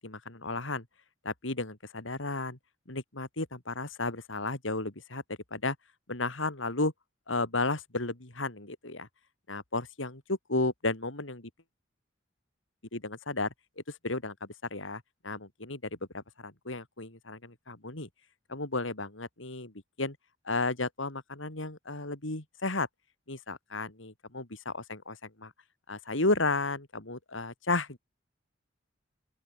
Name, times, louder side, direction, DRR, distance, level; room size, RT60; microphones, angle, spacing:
voice 1, 0.0-0.8 1.2-2.6 2.9-5.8 6.1-6.9 7.3-9.1 9.5-11.5 12.9-13.5 13.9-15.8 16.1-18.1 18.5-19.7 20.0-20.2 20.5-22.9 23.3-25.5 25.9-28.0, left 2 dB, 85° left, 3.8 m, -33 dB
open air
head